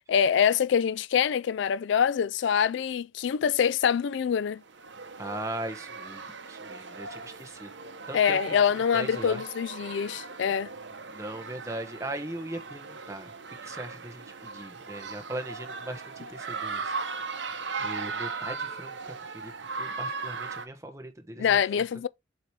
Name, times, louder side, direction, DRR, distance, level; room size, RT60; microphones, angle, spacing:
voice 1, 0.1-4.6 8.1-10.7 21.4-22.1, left 7 dB, 70° left, 0.3 m, -25 dB
sound 1, 4.6-20.7, right 4 dB, 65° right, 0.9 m, -38 dB
voice 2, 5.2-6.2 6.5-7.7 8.1-8.6 8.9-9.4 11.1-13.3 13.6-16.9 17.8-21.6, right 1 dB, 15° right, 1.0 m, -39 dB
7.6 x 3.0 x 4.6 m
head